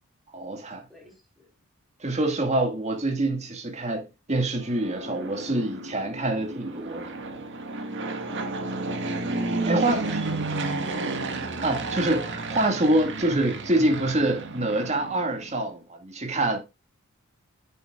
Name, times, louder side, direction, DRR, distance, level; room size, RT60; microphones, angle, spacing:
voice 1, 0.3-0.8 2.0-7.1 9.7-10.2 11.6-16.6, right 1 dB, 30° right, 2.1 m, -26 dB
voice 2, 0.9-1.5 8.2-8.6 9.5-10.6, equal, ahead, 4.1 m, -49 dB
Fixed-wing aircraft airplane, 4.5-15.6, right 2 dB, 55° right, 1.8 m, -32 dB
9.9 x 8.3 x 2.5 m
head